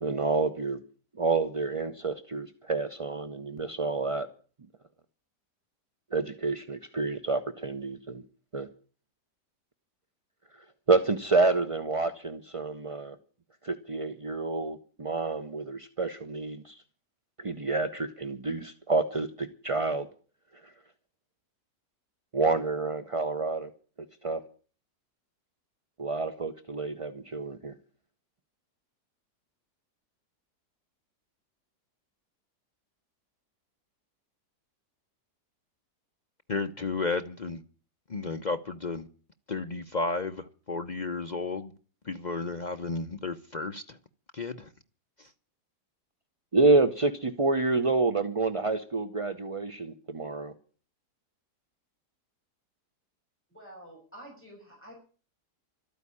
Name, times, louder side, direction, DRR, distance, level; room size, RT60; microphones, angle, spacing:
voice 1, 0.0-0.8 1.2-4.3 6.1-8.2 8.5-8.7 10.9-13.2 13.6-16.8 17.4-20.1 22.3-23.7 24.2-24.4 26.0-27.7 46.5-50.5, right 3 dB, 35° right, 0.5 m, -28 dB
voice 2, 36.5-37.6 38.1-39.1 39.5-41.7 42.1-44.0 44.3-44.7, left 3 dB, 50° left, 0.5 m, -33 dB
voice 3, 53.5-54.9, right 1 dB, 5° left, 6.5 m, -48 dB
13.0 x 9.0 x 9.8 m
omnidirectional pair, 1.8 m